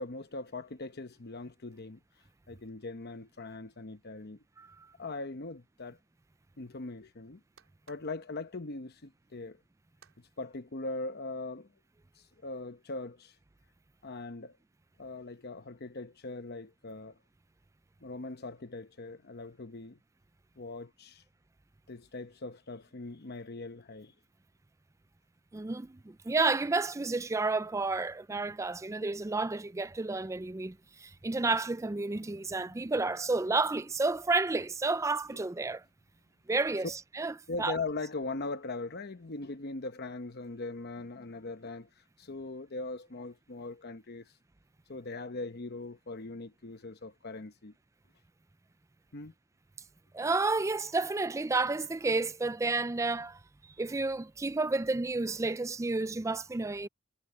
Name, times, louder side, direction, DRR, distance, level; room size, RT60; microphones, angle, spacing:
voice 1, 0.0-2.0 2.5-4.4 5.0-6.0 6.6-7.4 7.9-9.6 10.2-11.7 12.4-13.3 14.0-14.6 15.0-17.1 18.0-20.0 20.6-21.2 21.9-24.1 32.2-32.6 37.5-44.3 44.9-47.7 49.1-49.3, left 3 dB, 50° left, 0.9 m, -40 dB
sound 1, 5.1-10.2, right 7 dB, 70° right, 4.0 m, -67 dB
voice 2, 25.5-35.8 36.5-37.3 37.6-37.8 50.1-53.4 53.8-56.9, right 3 dB, 15° right, 0.4 m, -31 dB
head